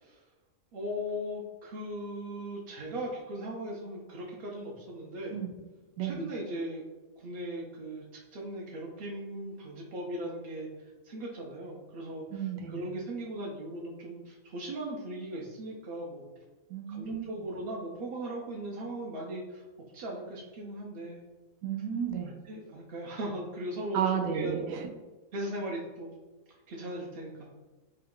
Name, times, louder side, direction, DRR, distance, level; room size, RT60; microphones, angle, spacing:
voice 1, 0.7-5.3 6.0-6.8 7.2-16.3 16.9-19.6 19.9-21.2 22.4-24.0 24.3-24.8 25.3-26.1 26.5-27.5, right 1 dB, 60° right, -3 dB, 0.6 m, -38 dB
voice 2, 6.0-6.3 12.3-12.9 16.7-17.3 21.6-22.3 23.9-24.9, right 8 dB, 85° right, 3 dB, 1.0 m, -32 dB
3.8 x 2.2 x 3.6 m, 1.2 s
omnidirectional pair, 1.4 m